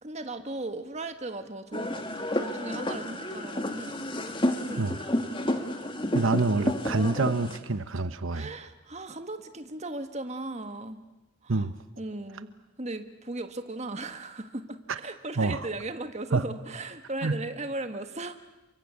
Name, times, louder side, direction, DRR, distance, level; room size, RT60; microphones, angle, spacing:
voice 1, 0.0-4.0 4.7-4.9 8.3-11.0 11.4-11.7 12.0-12.5 12.8-18.4, right 2 dB, 35° right, 8 dB, 1.6 m, -37 dB
sound 1, 1.7-7.6, left 1 dB, 25° left, 2.0 m, -30 dB
voice 2, 6.1-8.5 11.5-11.7 14.9-15.0 15.4-15.7 16.3-16.5 17.2-17.4, right 3 dB, 80° right, 12 dB, 1.0 m, -27 dB
28.5 x 24.0 x 8.4 m, 1.0 s
head